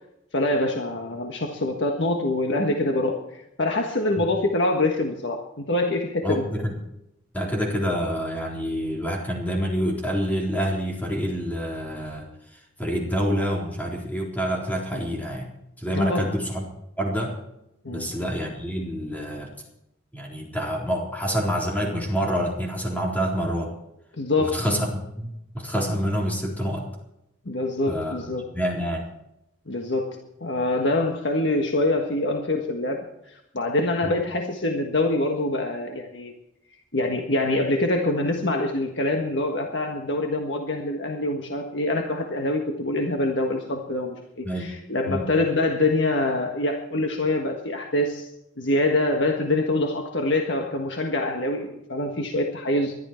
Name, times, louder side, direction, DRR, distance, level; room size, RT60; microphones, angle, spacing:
voice 1, 0.3-6.4 14.9-15.0 15.9-16.3 17.8-18.1 24.2-24.6 27.4-28.4 29.7-36.3 36.9-48.3 48.6-53.0, left 2 dB, 60° left, 3 dB, 1.6 m, -25 dB
voice 2, 6.2-6.8 7.3-15.5 15.8-16.7 17.0-17.3 17.9-19.5 20.1-23.7 24.4-26.9 27.9-29.1 34.0-34.2 44.4-44.7 45.1-45.3, equal, 10° left, -2 dB, 3.9 m, -27 dB
21.0 x 12.0 x 4.5 m, 0.84 s
head